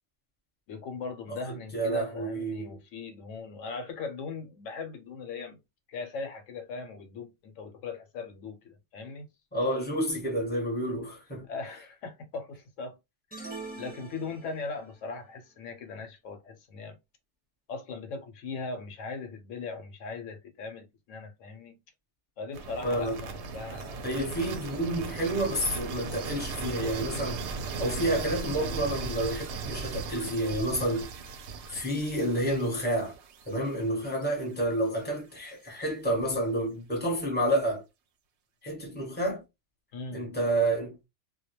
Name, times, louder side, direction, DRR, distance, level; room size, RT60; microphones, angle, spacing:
voice 1, 0.7-5.6 5.9-9.3 11.5-13.0 13.3-17.0 17.7-21.7 22.4-24.0 39.9-40.2, left 4 dB, 80° left, 0.9 m, -39 dB
voice 2, 1.3-2.7 9.5-11.5 22.8-23.2 24.0-31.0 31.7-33.1 33.5-37.8 38.6-39.4 40.1-41.1, right 1 dB, 10° left, 0.8 m, -29 dB
sound 1, 13.3-14.9, right 3 dB, 10° right, 1.1 m, -43 dB
sound 2, 22.5-34.5, right 4 dB, 70° right, 0.8 m, -37 dB
2.2 x 2.2 x 2.8 m
omnidirectional pair, 1.3 m